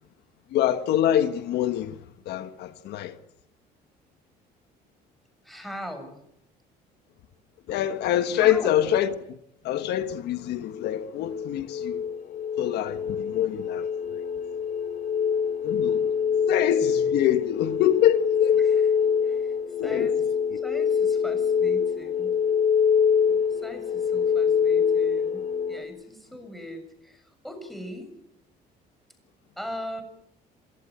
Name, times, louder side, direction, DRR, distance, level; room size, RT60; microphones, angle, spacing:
voice 1, 0.5-2.0 2.2-3.2 7.7-9.4 9.6-12.0 12.6-13.9 15.6-16.1 16.5-18.8 19.8-20.1, left 11 dB, 80° left, 1.4 m, -25 dB
voice 2, 5.4-6.2 8.3-8.8 18.6-18.9 19.2-19.6 19.8-20.2 20.6-22.4 23.5-28.1 29.6-30.0, equal, ahead, 7.0 m, -40 dB
sound 1, 10.7-25.8, left 7 dB, 50° left, 5.6 m, -25 dB
27.5 x 16.0 x 9.5 m
cardioid pair, 110°, 17 cm